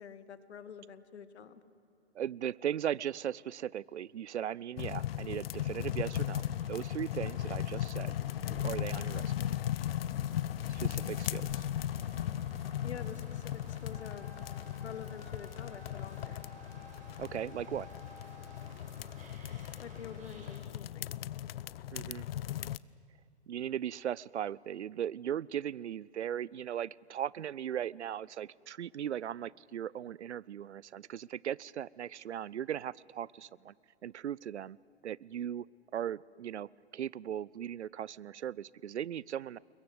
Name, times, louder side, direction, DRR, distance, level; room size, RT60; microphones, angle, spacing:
voice 1, 0.0-1.6 12.8-14.3 14.8-16.4 19.8-21.2, left 7 dB, 75° left, 13 dB, 1.8 m, -47 dB
voice 2, 2.1-8.1 8.5-9.4 10.7-11.7 17.2-17.9 21.9-22.3 23.5-33.7 34.0-34.8 35.0-35.7 35.9-39.6, right 10 dB, 80° right, 24 dB, 0.6 m, -38 dB
sound 1, 4.8-22.8, left 12 dB, 60° left, 0.7 m, -37 dB
sound 2, 5.6-20.6, right 3 dB, 20° right, 4.6 m, -55 dB
Wind instrument woodwind instrument, 13.9-18.7, left 3 dB, 10° left, 2.5 m, -55 dB
28.5 x 22.0 x 8.0 m, 2.6 s
hypercardioid pair, 125°, 34 cm